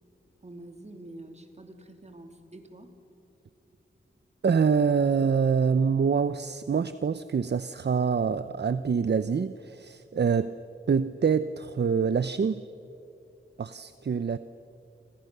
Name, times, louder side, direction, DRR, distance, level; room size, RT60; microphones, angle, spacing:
voice 1, 0.4-3.0, right 1 dB, 35° right, 5 dB, 2.9 m, -46 dB
voice 2, 4.4-10.5 10.9-12.6 13.6-14.4, right 6 dB, 55° right, 13 dB, 0.6 m, -25 dB
28.5 x 27.5 x 6.8 m, 2.7 s
wide cardioid pair, 110°, 21 cm